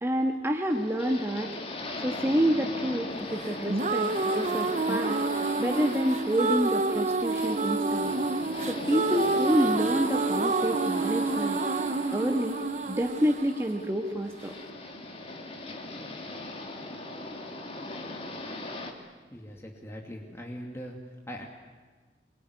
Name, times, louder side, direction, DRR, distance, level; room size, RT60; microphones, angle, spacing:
voice 1, 0.0-1.6 2.0-5.2 5.6-8.1 8.7-11.6 12.1-12.6 12.9-14.5, equal, 15° right, 2 dB, 1.5 m, -28 dB
sound 1, 0.7-18.9, left 2 dB, 35° left, 2.8 m, -39 dB
sound 2, 3.5-14.5, right 3 dB, 40° right, 0.8 m, -28 dB
voice 2, 19.3-21.5, equal, 15° left, 0 dB, 2.3 m, -41 dB
25.5 x 22.5 x 9.8 m, 1.4 s
head